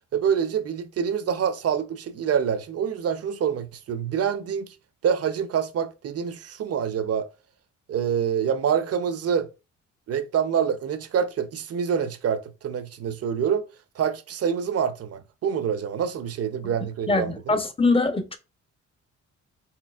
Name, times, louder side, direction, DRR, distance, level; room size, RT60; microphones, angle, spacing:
voice 1, 0.1-4.7 5.0-7.3 7.9-9.5 10.1-13.6 14.0-17.6, right 7 dB, 55° right, 0.7 m, -26 dB
voice 2, 17.1-18.4, left 3 dB, 20° left, 0.8 m, -23 dB
4.4 x 4.0 x 2.4 m
cardioid pair, 90°, 30 cm